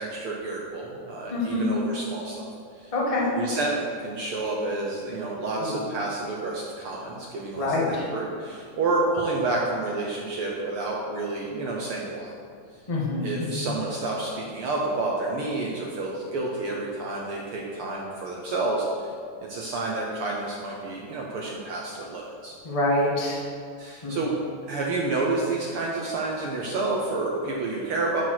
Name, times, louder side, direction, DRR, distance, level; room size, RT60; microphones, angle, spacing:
voice 1, 0.0-2.5 2.7-12.3 13.2-19.1 19.4-22.6 23.8-24.4 24.7-28.2, right 2 dB, 80° right, -2 dB, 1.2 m, -29 dB
voice 2, 1.3-1.7 2.9-3.3 5.6-5.7 7.5-8.1 12.9-13.7 22.6-23.4 24.0-24.2, left 2 dB, 45° left, -4 dB, 0.4 m, -26 dB
11.5 x 4.6 x 5.9 m, 2.2 s
omnidirectional pair, 3.7 m